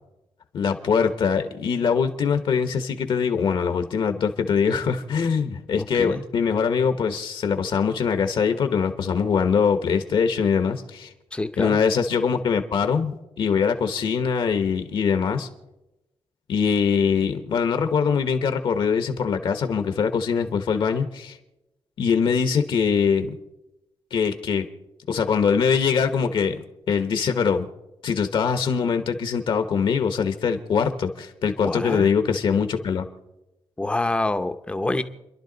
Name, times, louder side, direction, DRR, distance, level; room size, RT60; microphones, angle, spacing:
voice 1, 0.5-11.1 11.6-15.5 16.5-21.4 22.0-23.3 24.1-24.6 25.1-26.6 26.9-27.7 28.0-33.1, left 6 dB, 60° left, 8 dB, 1.1 m, -23 dB
voice 2, 11.3-11.8 31.6-32.1 33.8-35.0, left 2 dB, 10° left, 9 dB, 0.7 m, -26 dB
29.5 x 11.5 x 4.0 m, 0.96 s
wide cardioid pair, 165°, 10 cm